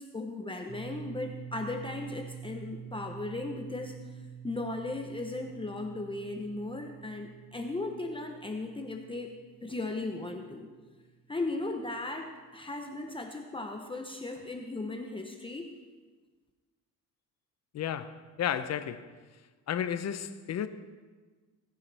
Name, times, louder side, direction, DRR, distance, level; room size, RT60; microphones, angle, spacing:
voice 1, 0.0-4.0 4.4-10.7 11.3-15.7, left 2 dB, 15° left, 3 dB, 0.8 m, -37 dB
sound 1, 0.7-11.3, right 8 dB, 30° right, 1.3 m, -47 dB
voice 2, 17.7-19.1 19.7-20.7, left 9 dB, 50° left, 11 dB, 0.7 m, -33 dB
17.5 x 10.0 x 3.4 m, 1.4 s
cardioid pair, 125°, 34 cm